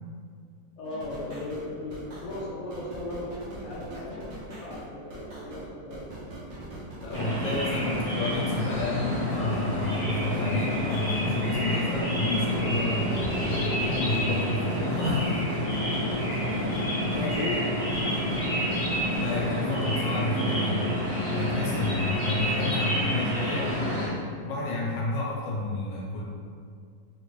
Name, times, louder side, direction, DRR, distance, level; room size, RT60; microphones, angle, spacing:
voice 1, 0.8-4.3 4.6-6.0 13.4-13.7 17.0-17.8, left 2 dB, 55° left, -6 dB, 1.0 m, -36 dB
sound 1, 0.8-19.5, right 1 dB, 80° right, 0.5 m, -42 dB
voice 2, 7.0-15.5 17.1-17.2 19.2-20.9 21.3-26.2, left 2 dB, 90° left, -3 dB, 1.4 m, -31 dB
sound 2, 7.1-24.1, equal, 35° left, 1.6 m, -28 dB
3.2 x 2.6 x 3.1 m, 2.2 s
omnidirectional pair, 1.9 m